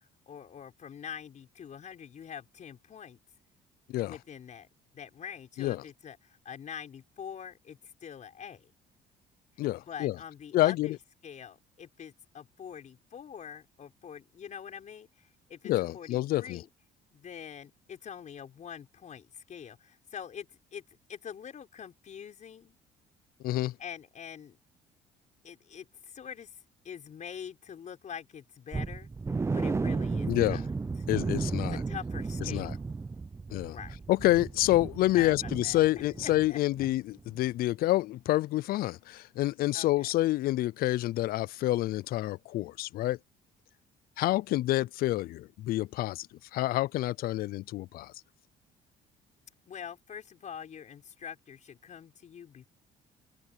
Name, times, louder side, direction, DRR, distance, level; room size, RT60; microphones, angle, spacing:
voice 1, 0.3-3.2 4.0-4.7 4.9-8.7 9.9-11.0 11.2-16.7 17.1-20.8 21.1-22.8 23.8-24.6 25.4-26.5 26.8-29.1 29.5-30.6 31.7-32.8 33.7-34.0 35.1-35.3 35.6-35.8 36.2-36.6 39.7-40.1 49.7-52.7, left 8 dB, 45° left, 5.6 m, -44 dB
voice 2, 9.6-10.2 10.5-11.0 15.6-16.6 23.4-23.7 30.3-30.6 31.1-31.8 32.5-32.7 33.5-33.8 34.1-43.2 44.2-46.3 46.5-48.1, left 16 dB, 60° left, 0.4 m, -28 dB
sound 1, 28.7-36.5 36.7-36.9 37.3-37.4, right 4 dB, 15° right, 0.5 m, -34 dB
cardioid pair, 110°, 17 cm